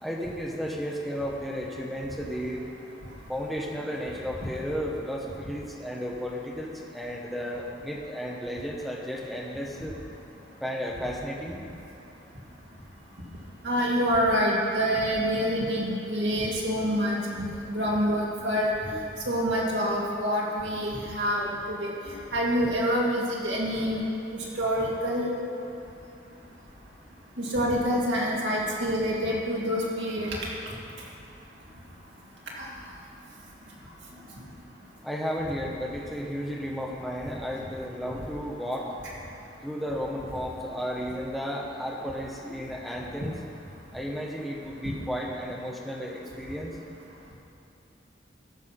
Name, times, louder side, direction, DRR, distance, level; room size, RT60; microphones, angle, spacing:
voice 1, 0.0-2.6 3.3-10.0 10.6-11.6 35.0-38.9 39.6-43.4 43.9-46.7, equal, ahead, -2 dB, 1.2 m, -33 dB
voice 2, 13.6-19.0 19.3-21.9 22.3-24.0 24.3-25.3 27.4-30.5 32.6-32.7, equal, 75° right, -4 dB, 2.4 m, -27 dB
14.5 x 6.0 x 5.8 m, 2.8 s
head